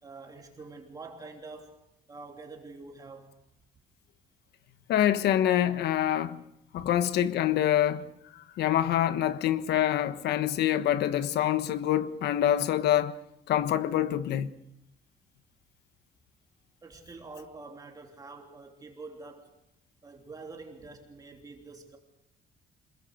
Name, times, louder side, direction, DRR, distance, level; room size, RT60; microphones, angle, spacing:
voice 1, 0.0-1.8 2.1-3.4 6.8-6.9 16.8-19.5 20.0-22.0, right 3 dB, 20° right, 3.1 m, -46 dB
voice 2, 4.9-6.4 6.7-8.1 8.3-13.2 13.5-14.5, left 11 dB, 75° left, 1.3 m, -26 dB
27.0 x 21.5 x 6.6 m
cardioid pair, 165°, 17 cm